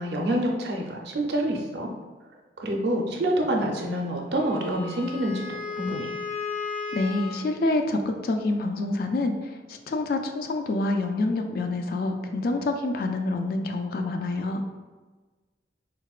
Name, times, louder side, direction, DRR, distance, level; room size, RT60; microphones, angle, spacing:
voice 1, 0.0-1.9 2.6-6.1, right 1 dB, 70° right, 1 dB, 0.5 m, -27 dB
Wind instrument woodwind instrument, 4.3-7.5, left 5 dB, 30° left, 0.7 m, -35 dB
voice 2, 6.9-14.6, left 2 dB, 55° left, 5 dB, 0.3 m, -27 dB
4.0 x 2.1 x 2.3 m, 1.3 s
head